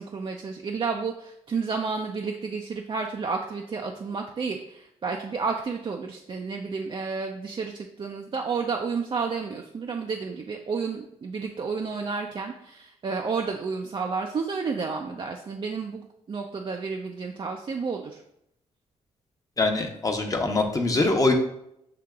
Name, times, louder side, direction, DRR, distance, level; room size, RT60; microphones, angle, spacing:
voice 1, 0.0-18.2, right 5 dB, 40° right, 2 dB, 0.5 m, -31 dB
voice 2, 19.6-21.3, left 2 dB, 25° left, 3 dB, 0.8 m, -23 dB
7.6 x 2.8 x 2.3 m, 0.77 s
cardioid pair, 75°, 13 cm